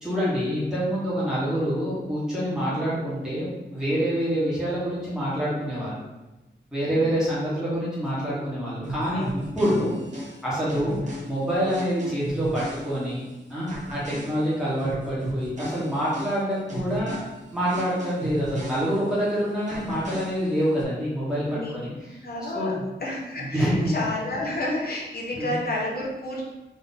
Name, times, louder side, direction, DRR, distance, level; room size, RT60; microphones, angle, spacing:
voice 1, 0.0-6.0 6.7-9.2 9.5-9.9 10.4-11.0 11.2-13.2 13.5-17.2 17.5-22.2 22.5-22.8 23.5-23.9 25.4-25.6, equal, 5° right, -9 dB, 1.3 m, -26 dB
sound 1, 8.8-13.3 13.7-19.3 19.7-20.8, right 1 dB, 40° right, 1.0 m, -36 dB
voice 2, 9.1-9.4 10.7-11.0 14.1-14.4 21.5-21.7 22.2-22.7 23.0-26.4, left 1 dB, 55° left, -3 dB, 1.1 m, -31 dB
3.9 x 2.8 x 4.1 m, 1.1 s
wide cardioid pair, 130°, 20 cm